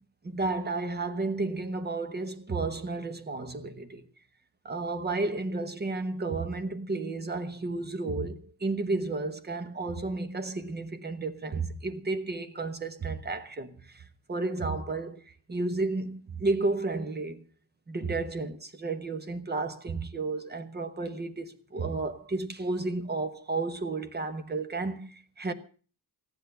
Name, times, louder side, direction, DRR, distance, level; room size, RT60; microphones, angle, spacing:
voice 1, 0.2-4.0 4.6-15.2 15.5-17.4 17.9-25.5, right 3 dB, 25° right, 1.1 m, -32 dB
14.5 x 10.5 x 6.7 m
wide cardioid pair, 170°, 40 cm